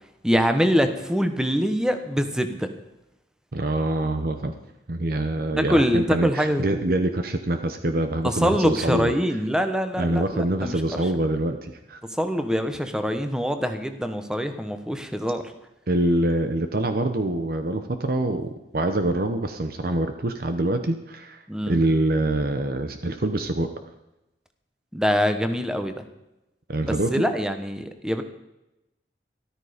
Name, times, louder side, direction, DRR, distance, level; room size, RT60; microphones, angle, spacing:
voice 1, 0.2-2.7 5.6-6.6 8.2-10.8 12.2-15.5 21.5-21.8 24.9-25.9 26.8-28.2, equal, 5° right, 8 dB, 1.0 m, -24 dB
voice 2, 3.5-4.5 4.9-9.1 10.0-12.0 15.9-23.7 26.7-27.2, right 1 dB, 55° right, 8 dB, 0.9 m, -25 dB
13.5 x 13.0 x 5.1 m, 0.93 s
head